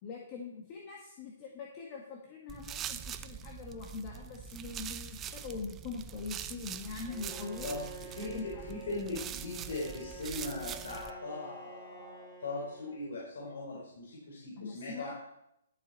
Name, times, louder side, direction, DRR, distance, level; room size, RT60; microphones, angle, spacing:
voice 1, 0.0-7.7 8.2-8.6 14.6-15.1, left 4 dB, 30° left, 0 dB, 1.4 m, -43 dB
sound 1, 2.5-11.1, right 9 dB, 15° right, 0.4 m, -43 dB
Bowed string instrument, 7.0-13.3, right 3 dB, 10° left, 1.7 m, -50 dB
voice 2, 7.6-15.1, left 2 dB, 75° left, -4 dB, 3.9 m, -40 dB
11.5 x 8.0 x 4.1 m, 0.81 s
hypercardioid pair, 155°, 0 cm